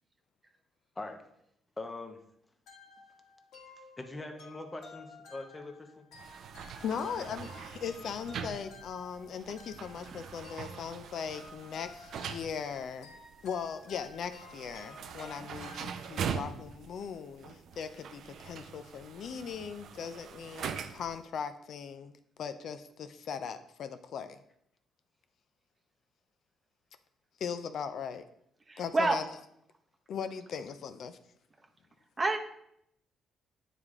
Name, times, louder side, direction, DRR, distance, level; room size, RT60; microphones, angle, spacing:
voice 1, 1.8-2.2 4.0-6.1 7.0-7.4, left 2 dB, 20° left, 6 dB, 0.8 m, -43 dB
sound 1, 2.7-16.5, left 4 dB, 80° left, 1.7 m, -54 dB
sound 2, 6.1-21.2, right 7 dB, 65° right, 0.4 m, -43 dB
voice 2, 6.8-22.1 22.4-24.4 27.4-28.2 28.8-29.2 30.1-31.2, left 7 dB, 65° left, 10 dB, 0.4 m, -39 dB
voice 3, 28.7-29.2 32.2-32.4, right 2 dB, 25° right, 5 dB, 0.7 m, -27 dB
9.1 x 3.3 x 3.6 m, 0.74 s
cardioid pair, 95°, 0 cm